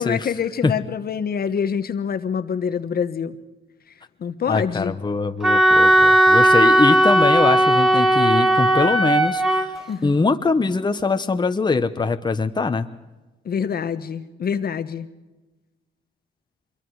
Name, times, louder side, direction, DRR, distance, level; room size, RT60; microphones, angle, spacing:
voice 1, 0.0-3.4 4.2-4.9 9.9-10.2 13.4-15.1, left 7 dB, 50° left, 10 dB, 1.2 m, -26 dB
voice 2, 4.5-9.7 10.0-12.9, left 4 dB, 20° left, 8 dB, 1.1 m, -22 dB
Wind instrument woodwind instrument, 5.4-9.7, right 1 dB, ahead, 2.7 m, -16 dB
25.0 x 23.0 x 4.9 m, 1.1 s
cardioid pair, 90°, 20 cm